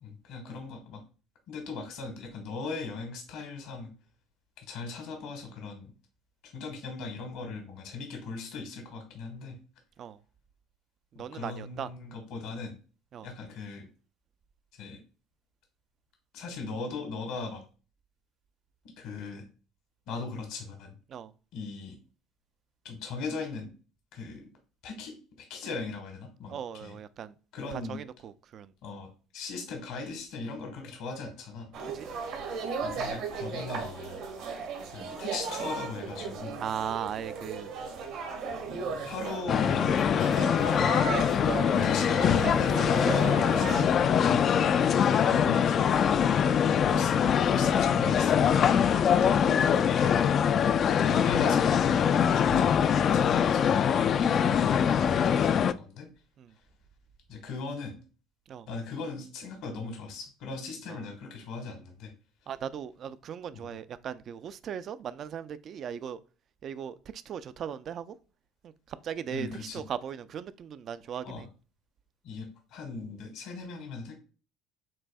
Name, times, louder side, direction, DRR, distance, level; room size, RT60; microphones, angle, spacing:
voice 1, 0.0-1.0 1.5-3.9 4.7-5.9 6.4-9.6 11.1-12.8 13.2-13.9 14.7-15.0 16.3-17.6 19.0-19.4 20.1-20.9 21.5-22.0 22.8-23.7 24.1-24.5 24.8-27.0 27.5-28.0 28.8-31.7 32.8-34.2 34.9-36.6 38.5-38.6 39.0-41.0 41.5-44.6 45.2-45.9 46.6-48.6 48.9-49.4 49.7-50.1 51.0-56.1 57.3-58.0 58.7-62.1 63.5-63.7 69.3-69.8 71.2-71.5 72.2-74.1, left 4 dB, 70° left, 1.3 m, -39 dB
voice 2, 11.1-11.9 13.1-13.3 21.1-21.3 26.5-27.3 27.7-28.7 31.9-32.1 36.6-37.7 43.8-43.9 44.9-45.1 48.8-48.9 56.4-56.5 58.5-58.7 60.9-61.0 62.5-66.2 66.6-68.2 68.6-71.5, right 8 dB, 50° right, 0.4 m, -38 dB
sound 1, 31.7-43.8, right 5 dB, 70° right, 1.4 m, -35 dB
sound 2, 39.5-55.7, left 8 dB, 50° left, 0.3 m, -23 dB
7.3 x 2.6 x 2.2 m
hypercardioid pair, 75°, 0 cm